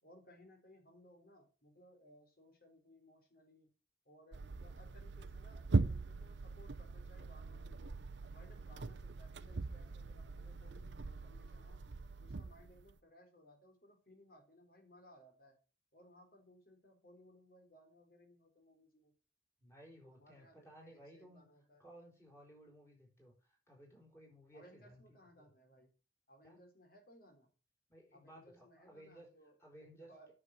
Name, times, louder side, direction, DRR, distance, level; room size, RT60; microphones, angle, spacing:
voice 1, 0.0-3.7 4.1-7.9 8.2-11.8 12.2-15.6 15.9-19.1 20.1-21.9 24.5-26.0 26.3-27.5 28.1-30.3, equal, 50° left, 4 dB, 3.8 m, -63 dB
sound 1, 4.3-13.0, right 3 dB, 75° right, 0.7 m, -40 dB
voice 2, 19.6-21.5 21.8-25.5 26.4-26.6 27.9-29.3 29.6-30.1, equal, 15° left, -1 dB, 5.0 m, -59 dB
9.8 x 7.0 x 7.6 m, 0.36 s
head